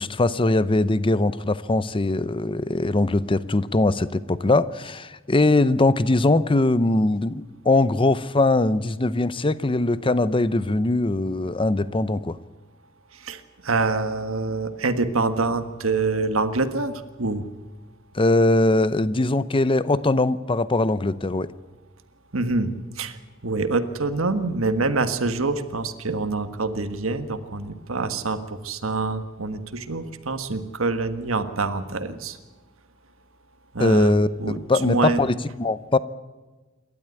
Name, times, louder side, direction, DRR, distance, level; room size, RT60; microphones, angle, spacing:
voice 1, 0.0-12.4 18.1-21.5 33.8-36.0, left 2 dB, 25° left, 16 dB, 0.7 m, -21 dB
voice 2, 13.1-17.4 22.3-23.2 23.4-32.4 33.7-35.2, right 3 dB, 75° right, 9 dB, 1.5 m, -26 dB
28.0 x 12.5 x 9.6 m, 1.2 s
head